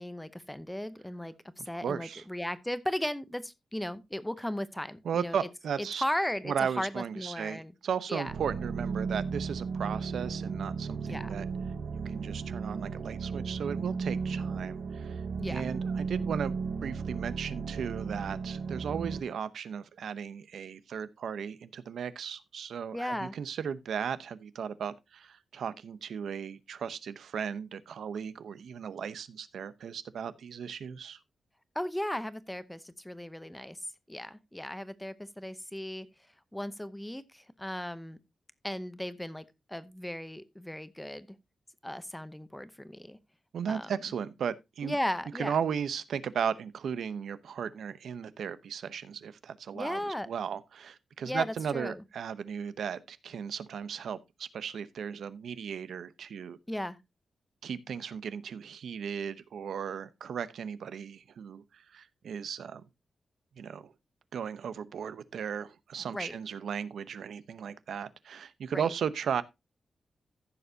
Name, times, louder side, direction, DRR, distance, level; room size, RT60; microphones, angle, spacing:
voice 1, 0.0-1.3 1.7-5.5 5.8-7.7 8.1-8.3 11.1-11.4 15.4-15.6 22.9-23.4 31.7-33.8 34.1-36.1 36.5-38.2 38.6-41.3 41.8-43.2 43.7-43.9 44.8-45.6 49.7-50.3 51.3-52.0 56.7-57.0 66.1-66.4 68.7-68.9, left 1 dB, 5° left, 0.7 m, -36 dB
voice 2, 1.6-2.2 5.0-6.0 6.5-11.5 12.0-31.2 43.5-45.0 45.4-56.6 57.6-62.8 63.6-63.9 64.3-69.4, right 7 dB, 85° right, 0.8 m, -36 dB
sound 1, 8.3-19.2, right 5 dB, 65° right, 1.0 m, -35 dB
15.0 x 6.8 x 2.7 m
wide cardioid pair, 165°, 0 cm